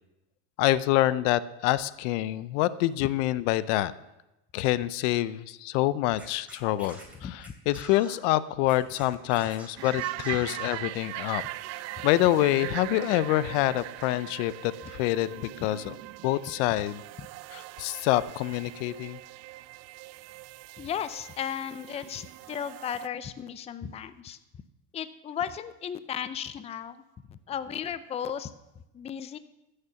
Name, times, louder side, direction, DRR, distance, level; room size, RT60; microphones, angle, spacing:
voice 1, 0.6-3.9 4.5-11.4 11.7-16.0 16.2-17.0 17.5-19.2, left 15 dB, 75° left, 17 dB, 0.6 m, -26 dB
Scratching (performance technique), 6.1-8.2 8.6-10.8, right 1 dB, 5° right, 3.0 m, -47 dB
sound 1, 9.8-23.1, right 17 dB, 45° right, 0.4 m, -40 dB
voice 2, 20.8-24.4 24.9-27.0 27.3-28.5 28.9-29.4, left 8 dB, 20° left, 13 dB, 0.4 m, -35 dB
14.5 x 6.7 x 5.7 m, 0.96 s
supercardioid pair, 120°, 36 cm